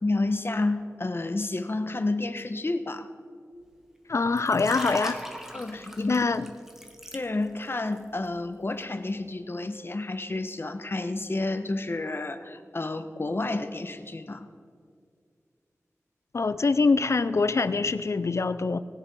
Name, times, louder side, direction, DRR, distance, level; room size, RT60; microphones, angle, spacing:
voice 1, 0.0-3.1 5.5-6.2 7.1-14.5, left 2 dB, 45° left, 9 dB, 1.0 m, -30 dB
voice 2, 4.1-5.2 6.1-6.5 16.3-18.8, left 4 dB, 60° left, 14 dB, 0.5 m, -24 dB
Liquid, 4.3-7.7 8.0-8.3, equal, 10° right, 1.5 m, -38 dB
19.5 x 7.0 x 5.5 m, 2.1 s
wide cardioid pair, 60°, 5 cm